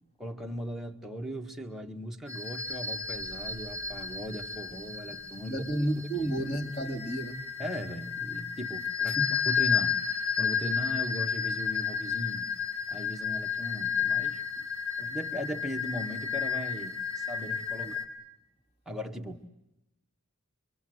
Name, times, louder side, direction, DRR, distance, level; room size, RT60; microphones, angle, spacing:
voice 1, 0.2-5.7 7.6-9.2 9.5-10.0 10.4-12.5 12.9-14.7 15.0-18.0 18.9-19.4, equal, ahead, 1 dB, 1.7 m, -38 dB
sound 1, 2.3-18.0, left 7 dB, 70° left, 4.2 m, -32 dB
voice 2, 5.5-7.4 9.2-9.3 17.8-17.9, right 1 dB, 30° left, 4 dB, 2.6 m, -31 dB
26.0 x 25.0 x 7.9 m, 0.92 s
head